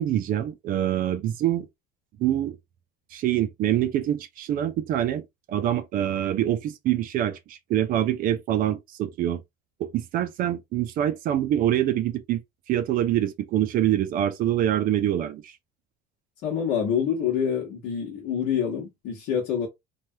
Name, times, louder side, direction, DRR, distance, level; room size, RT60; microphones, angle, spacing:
voice 1, 0.0-1.7 2.2-2.6 3.1-5.2 5.5-9.4 9.8-12.4 12.7-15.6, right 12 dB, 45° right, 0.5 m, -25 dB
voice 2, 16.4-19.7, left 8 dB, 65° left, 1.0 m, -26 dB
3.2 x 2.3 x 2.7 m
cardioid pair, 160°, 20 cm